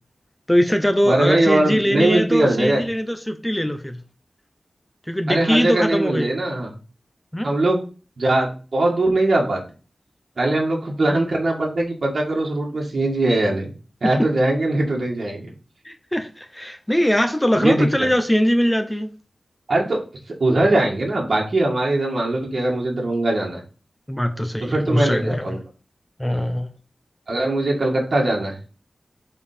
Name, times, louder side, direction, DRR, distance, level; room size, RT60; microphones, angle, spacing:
voice 1, 0.5-4.0 5.1-6.3 7.3-7.5 15.8-19.1 24.1-25.4 26.2-26.7, equal, 10° left, 0.8 m, -21 dB
voice 2, 1.1-2.8 5.3-6.7 7.4-7.8 8.2-9.6 10.4-13.7 14.0-15.5 17.6-18.1 19.7-20.0 20.4-23.6 24.6-25.6 27.3-28.6, right 2 dB, 60° right, 1.9 m, -21 dB
5.4 x 4.7 x 5.1 m
wide cardioid pair, 100°, 0 cm